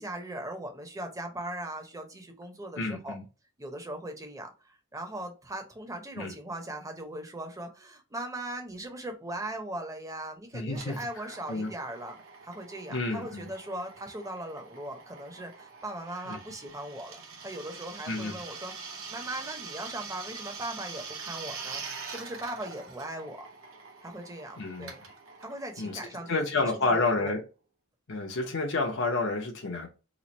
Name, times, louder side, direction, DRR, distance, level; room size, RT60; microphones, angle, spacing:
voice 1, 0.0-3.2 3.6-12.2 12.4-18.7 19.1-23.5 24.0-25.0 25.4-27.3, right 1 dB, 15° right, 0.7 m, -39 dB
voice 2, 2.8-3.2 6.2-6.3 10.5-11.7 12.9-13.5 16.3-16.4 18.1-18.4 24.6-24.9 25.8-26.0 26.3-27.4 28.1-29.9, left 3 dB, 60° left, 0.6 m, -30 dB
Drill, 10.7-27.1, right 5 dB, 65° right, 0.8 m, -44 dB
3.0 x 2.4 x 4.0 m
head